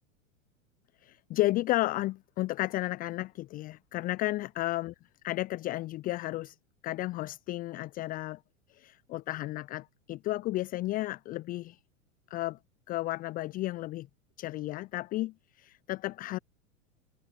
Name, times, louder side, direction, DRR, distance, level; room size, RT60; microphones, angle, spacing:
voice 1, 1.0-4.9 5.2-6.6 6.8-8.4 8.7-11.8 12.3-12.6 12.9-14.1 14.4-16.4, left 17 dB, 25° left, 0.5 m, -33 dB
figure-of-eight pair, 95°, 38 cm